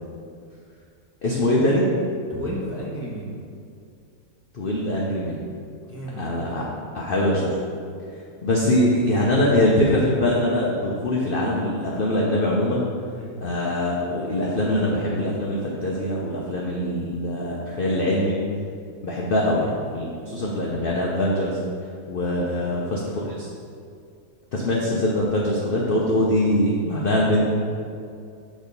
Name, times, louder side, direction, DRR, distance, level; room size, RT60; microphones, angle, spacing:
voice 1, 1.2-1.9 4.5-5.4 6.2-6.6 6.9-7.5 8.4-12.8 13.4-18.4 19.0-21.6 22.1-23.5 24.5-27.4, left 1 dB, 50° left, -4 dB, 0.6 m, -23 dB
voice 2, 2.3-3.4 5.8-6.5 13.1-13.3 22.5-22.9, equal, 10° right, -6 dB, 0.9 m, -34 dB
6.4 x 3.6 x 5.2 m, 2.4 s
omnidirectional pair, 1.7 m